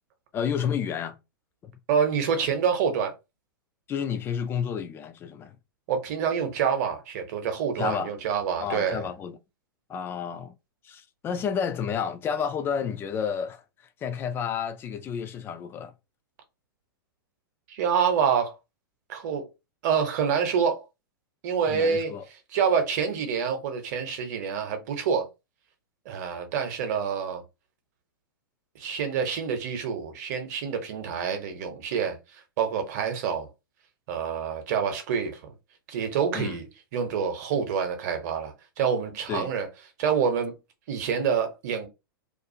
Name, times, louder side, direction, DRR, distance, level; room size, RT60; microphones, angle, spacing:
voice 1, 0.3-1.2 1.6-1.7 3.9-5.6 7.8-8.1 8.6-9.4 9.9-10.5 10.8-13.6 14.0-15.9 21.7-22.2 36.3-36.6 39.3-39.5, left 7 dB, 20° left, 0.3 m, -30 dB
voice 2, 1.9-3.1 5.9-9.1 17.7-18.5 19.1-19.4 19.8-20.8 21.4-22.1 22.5-25.3 26.1-27.4 28.7-32.2 32.6-33.5 34.1-35.4 35.9-36.6 36.9-39.7 40.0-40.6 40.9-41.9, right 7 dB, 50° right, 0.8 m, -27 dB
2.5 x 2.3 x 2.7 m
figure-of-eight pair, 105°, 12 cm